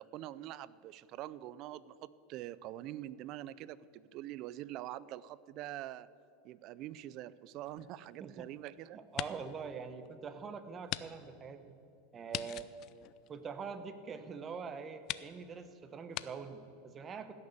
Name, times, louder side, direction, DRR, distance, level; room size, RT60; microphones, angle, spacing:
voice 1, 0.0-6.1 6.4-9.0, right 14 dB, 45° right, 18 dB, 0.4 m, -45 dB
sound 1, 7.7-8.6 9.0-9.6 10.0-10.1 10.9-11.1 11.3-11.4 12.3-13.9 14.5-14.6 15.0-15.3 16.1-16.3, left 15 dB, 45° left, 0.4 m, -41 dB
voice 2, 8.9-11.8 12.1-12.7 13.3-17.3, right 5 dB, 25° right, 10 dB, 0.9 m, -44 dB
16.0 x 6.7 x 7.1 m, 2.6 s
supercardioid pair, 135°, 0 cm